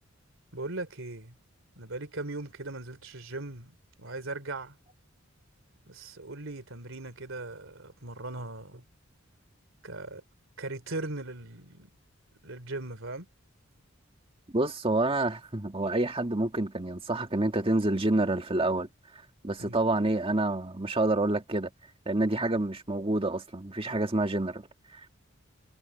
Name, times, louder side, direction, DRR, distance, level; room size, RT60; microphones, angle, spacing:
voice 1, 0.5-1.3 1.8-4.8 5.9-8.8 9.8-10.2 10.6-11.9 12.4-13.3 19.6-19.8, right 2 dB, 75° right, 3.2 m, -39 dB
voice 2, 14.5-18.9 19.4-21.7 22.1-24.7, right 2 dB, 25° right, 2.0 m, -28 dB
head